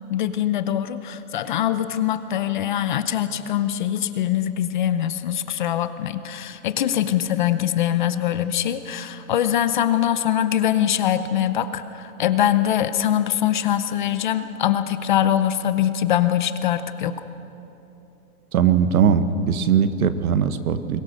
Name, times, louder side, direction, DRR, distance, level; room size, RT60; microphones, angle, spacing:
voice 1, 0.1-17.2, left 11 dB, 35° left, 11 dB, 0.6 m, -23 dB
voice 2, 18.5-21.0, right 7 dB, 70° right, 11 dB, 1.4 m, -20 dB
23.0 x 19.5 x 6.5 m, 2.9 s
hypercardioid pair, 170°, 44 cm